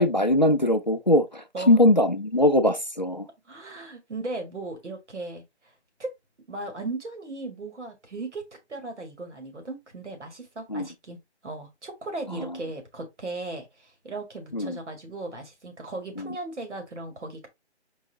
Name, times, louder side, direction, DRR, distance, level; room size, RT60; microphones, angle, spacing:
voice 1, 0.0-3.2 10.7-10.9 14.5-14.8, left 1 dB, 40° left, 0.4 m, -21 dB
voice 2, 3.5-5.4 6.0-6.1 6.5-11.2 11.4-17.5, right 2 dB, 85° right, 2.4 m, -37 dB
4.7 x 2.5 x 4.4 m
hypercardioid pair, 180°, 34 cm